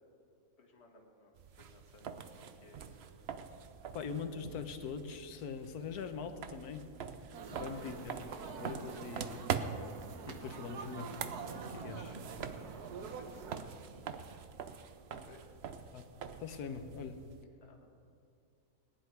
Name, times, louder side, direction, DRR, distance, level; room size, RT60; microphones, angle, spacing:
voice 1, 0.6-3.0 3.4-3.5 7.5-8.1 11.9-12.5 13.0-13.6 15.1-15.4 17.6-17.9, left 2 dB, 45° left, 0 dB, 1.6 m, -61 dB
sound 1, 1.3-17.4, right 7 dB, 55° right, 0.7 m, -44 dB
voice 2, 3.9-6.8 7.5-8.2 8.6-9.4 10.3-11.1 11.7-12.2 15.9-16.1 16.4-17.2, left 6 dB, 80° left, 8 dB, 1.4 m, -42 dB
sound 2, 7.3-13.6, right 5 dB, 85° right, 1.5 m, -46 dB
19.0 x 10.5 x 4.7 m, 2.4 s
omnidirectional pair, 1.6 m